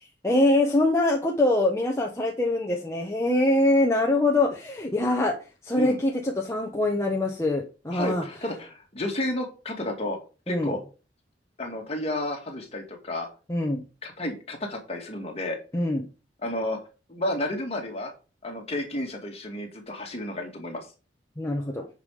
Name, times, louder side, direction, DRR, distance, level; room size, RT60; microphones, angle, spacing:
voice 1, 0.2-5.4 5.6-8.2 10.5-10.7 13.5-13.8 15.7-16.1 21.4-21.9, left 1 dB, 15° left, 0 dB, 1.1 m, -24 dB
voice 2, 7.9-10.2 10.5-10.8 11.6-13.3 14.0-15.6 16.4-16.8 17.1-18.1 18.4-20.9, left 1 dB, 35° left, 2 dB, 2.3 m, -31 dB
9.1 x 5.5 x 5.0 m, 0.33 s
head